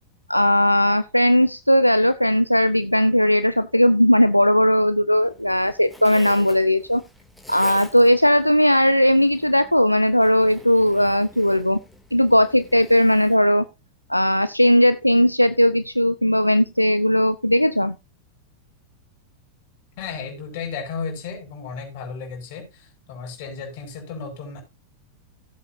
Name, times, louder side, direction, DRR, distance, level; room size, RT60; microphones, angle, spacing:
voice 1, 0.3-7.0 7.5-11.8 12.1-13.6 14.1-17.9, equal, 90° left, 0.5 m, -18 dB
Zipper (clothing), 5.1-13.3, left 1 dB, ahead, 2.5 m, -45 dB
voice 2, 20.0-24.6, left 5 dB, 50° left, 5.7 m, -34 dB
16.0 x 8.2 x 2.7 m
figure-of-eight pair, 90°, 0 cm